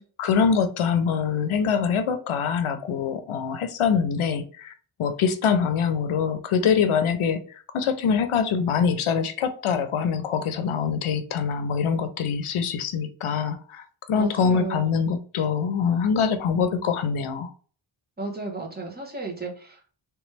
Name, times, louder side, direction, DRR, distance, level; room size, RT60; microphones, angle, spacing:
voice 1, 0.2-4.7 5.0-17.5, left 6 dB, 85° left, 0.6 m, -24 dB
voice 2, 14.1-15.0 18.2-19.9, right 3 dB, 20° right, 1.2 m, -34 dB
3.4 x 3.0 x 3.3 m
wide cardioid pair, 115°, 48 cm